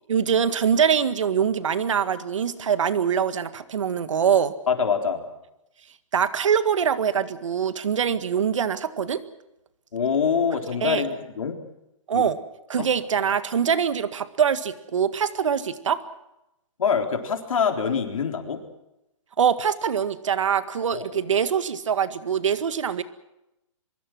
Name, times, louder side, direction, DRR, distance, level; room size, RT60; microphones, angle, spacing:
voice 1, 0.1-4.5 6.1-9.2 10.8-11.0 12.1-12.4 12.7-16.0 19.4-23.0, right 7 dB, 70° right, 12 dB, 1.8 m, -23 dB
voice 2, 4.7-5.2 9.9-11.5 12.1-12.3 12.8-12.9 16.8-18.6 20.9-21.2, left 6 dB, 85° left, 4 dB, 4.0 m, -25 dB
24.0 x 22.5 x 6.2 m, 0.89 s
hypercardioid pair, 175°, 17 cm